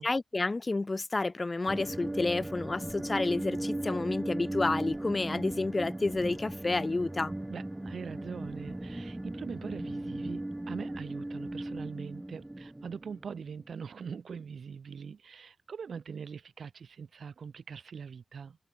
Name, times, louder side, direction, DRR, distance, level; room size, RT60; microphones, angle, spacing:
voice 1, 0.0-7.3, left 3 dB, 35° left, 2.3 m, -30 dB
sound 1, 1.7-13.7, right 1 dB, 20° right, 1.9 m, -37 dB
voice 2, 7.5-18.6, right 6 dB, 80° right, 4.6 m, -42 dB
cardioid pair, 55°, 0 cm